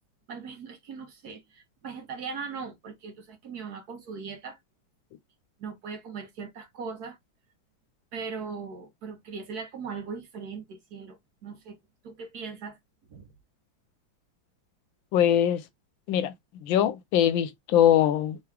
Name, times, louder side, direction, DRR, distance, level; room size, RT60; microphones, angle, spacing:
voice 1, 0.3-4.6 5.6-7.2 8.1-11.8 12.0-12.8 13.1-13.3, right 5 dB, 60° right, 1.2 m, -39 dB
voice 2, 15.1-15.6 16.1-16.3 16.6-18.4, left 10 dB, 80° left, 1.3 m, -22 dB
3.6 x 2.9 x 3.3 m
omnidirectional pair, 2.2 m